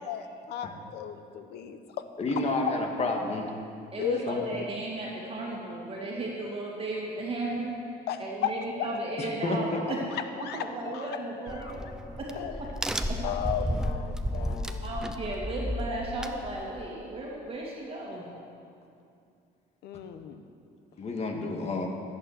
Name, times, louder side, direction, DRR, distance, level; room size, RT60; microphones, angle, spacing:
voice 1, 0.0-2.0 4.0-4.6 8.1-8.5 10.4-10.6 10.9-11.1 11.5-11.7 12.3-12.5 13.2-14.9 19.8-20.4, left 8 dB, 80° left, 9 dB, 1.0 m, -35 dB
voice 2, 2.2-3.5 4.3-4.4 9.2-9.8 21.0-21.9, left 2 dB, 40° left, 2 dB, 1.9 m, -30 dB
voice 3, 3.9-7.7 8.2-10.1 10.4-11.8 12.2-12.3 12.6-12.8 13.1-13.2 14.8-18.3, right 2 dB, 35° right, -3 dB, 2.4 m, -35 dB
Crack, 11.5-16.9, equal, 5° right, 0.7 m, -33 dB
14.0 x 8.6 x 6.7 m, 2.5 s
cardioid pair, 110°, 17 cm